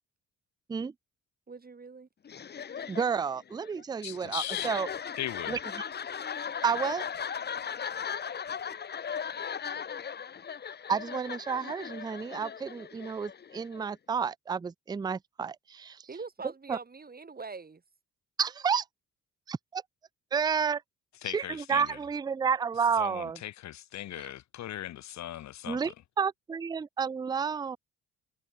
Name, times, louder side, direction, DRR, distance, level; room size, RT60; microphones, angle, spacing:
voice 1, 1.5-2.1 16.1-17.8, right 4 dB, 30° right, 5.7 m, -43 dB
sound 1, 2.2-13.9, left 7 dB, 35° left, 0.8 m, -38 dB
voice 2, 2.9-4.9 5.5-5.6 6.6-7.1 10.9-16.1 16.7-16.8 18.4-18.9 19.5-19.8 20.3-20.8 21.2-23.4 24.2-24.3 25.7-27.8, right 6 dB, 15° right, 0.4 m, -31 dB
voice 3, 4.0-4.7 5.2-5.6 21.2-21.9 23.0-25.8, left 13 dB, 65° left, 0.9 m, -38 dB
cardioid pair, 90°, 30 cm